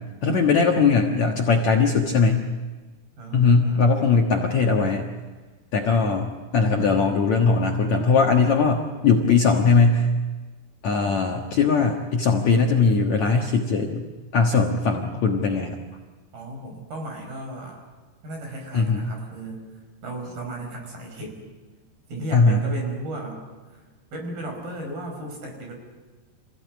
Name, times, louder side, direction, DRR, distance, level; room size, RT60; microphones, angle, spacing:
voice 1, 0.2-2.5 3.3-5.1 5.7-10.1 10.8-14.0 14.3-15.8 18.7-19.1 22.3-22.6, left 4 dB, 55° left, 1 dB, 2.2 m, -20 dB
voice 2, 3.2-3.8 16.3-17.8 18.2-19.7 20.0-21.4 22.1-23.4 23.7-23.8 24.1-25.7, right 1 dB, 55° right, 2 dB, 6.7 m, -35 dB
28.0 x 16.0 x 9.5 m, 1.3 s
omnidirectional pair, 4.9 m